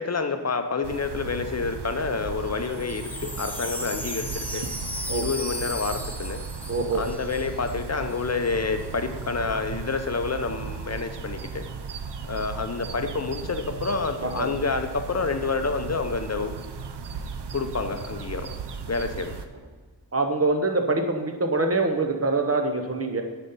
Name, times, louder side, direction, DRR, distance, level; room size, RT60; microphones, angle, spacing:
voice 1, 0.0-4.7 5.1-6.4 6.9-11.7 12.3-16.6 17.5-18.5 18.9-19.3, left 4 dB, 40° left, 6 dB, 0.6 m, -28 dB
sound 1, 0.8-19.5, right 5 dB, 75° right, 0.7 m, -36 dB
Wind chime, 2.6-8.2 8.4-8.9, left 1 dB, 5° left, 0.9 m, -36 dB
voice 2, 6.7-7.1 14.2-14.5 20.1-23.2, right 3 dB, 35° right, 5 dB, 0.9 m, -24 dB
10.0 x 4.2 x 5.5 m, 1.4 s
wide cardioid pair, 95°, 42 cm